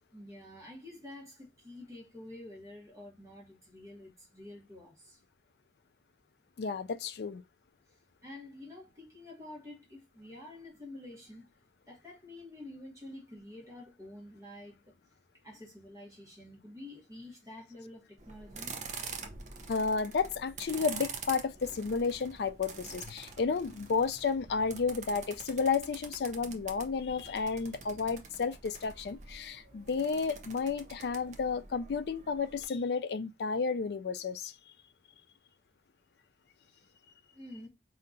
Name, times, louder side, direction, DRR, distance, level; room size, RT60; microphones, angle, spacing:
voice 1, 0.1-5.2 8.2-11.5 11.9-14.8 15.4-18.7 37.3-37.7, left 1 dB, 20° right, 1.6 m, -48 dB
voice 2, 6.6-7.4 19.7-34.5, left 5 dB, 70° left, 0.4 m, -32 dB
sound 1, 18.2-32.6, right 5 dB, 40° right, 0.6 m, -46 dB
4.3 x 2.8 x 2.5 m
head